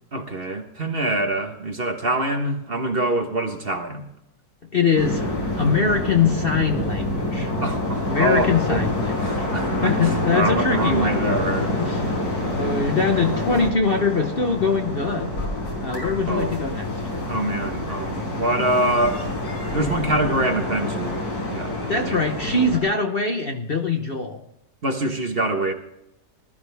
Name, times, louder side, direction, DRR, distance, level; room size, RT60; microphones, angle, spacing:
voice 1, 0.1-4.0 7.6-8.8 9.2-11.8 16.3-16.5 17.3-19.2 19.7-21.2 21.5-21.8 22.0-22.2 24.8-25.7, right 1 dB, 35° right, 4 dB, 1.4 m, -25 dB
voice 2, 4.7-7.5 8.1-9.5 9.8-11.2 11.7-12.1 12.5-15.3 15.8-16.9 21.9-24.4, left 4 dB, 40° left, 4 dB, 1.0 m, -23 dB
sound 1, 5.0-22.8, left 1 dB, 70° left, 5.3 m, -27 dB
20.0 x 13.0 x 3.4 m, 0.84 s
omnidirectional pair, 1.8 m